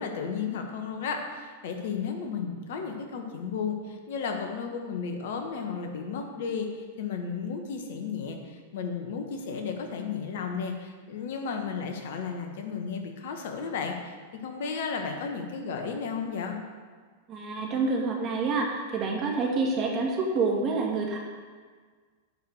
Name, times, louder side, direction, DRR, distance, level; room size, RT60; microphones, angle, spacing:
voice 1, 0.0-14.1 14.4-16.6, left 5 dB, 60° left, 4 dB, 1.5 m, -33 dB
voice 2, 17.3-21.2, right 3 dB, 35° right, -1 dB, 2.5 m, -27 dB
10.5 x 4.9 x 7.9 m, 1.5 s
figure-of-eight pair, 95°, 0 cm